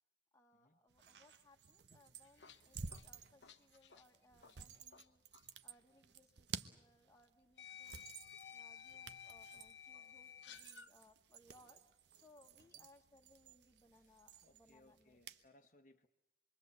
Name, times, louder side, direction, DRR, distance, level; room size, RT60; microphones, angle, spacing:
voice 1, 0.3-5.2 5.6-8.0 8.5-11.8 12.1-15.2, left 1 dB, 15° left, 4 dB, 1.4 m, -68 dB
sound 1, 0.9-15.5, right 6 dB, 75° right, 1.0 m, -54 dB
sound 2, 2.0-5.1 5.3-5.5 6.6-6.7 7.6-10.9, left 8 dB, 85° left, 1.0 m, -55 dB
voice 2, 13.9-16.1, left 1 dB, 45° left, 4 dB, 1.1 m, -69 dB
26.5 x 22.5 x 8.1 m, 0.81 s
head